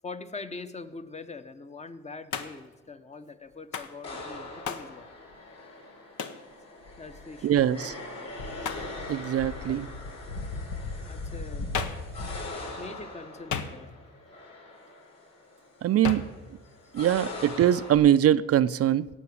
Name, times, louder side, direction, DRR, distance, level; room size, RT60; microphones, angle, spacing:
voice 1, 0.0-5.1 7.0-7.8 8.2-8.3 9.7-9.8 10.9-11.7 12.8-13.9 16.8-16.9, left 3 dB, 20° left, 0.8 m, -43 dB
Hands, 2.3-2.7 3.7-4.0 4.6-4.9 6.2-6.4 8.6-8.9 11.7-12.1 13.5-14.1 16.0-16.4, left 6 dB, 75° left, 1.1 m, -34 dB
sound 1, 4.0-18.0, left 2 dB, 55° left, 4.1 m, -43 dB
sound 2, 6.8-7.9 8.3-12.5, left 2 dB, 90° left, 1.5 m, -38 dB
voice 2, 7.4-7.9 9.1-9.9 15.8-16.3 16.9-19.1, right 11 dB, 50° right, 0.4 m, -22 dB
17.5 x 5.8 x 8.4 m
cardioid pair, 90°, 30 cm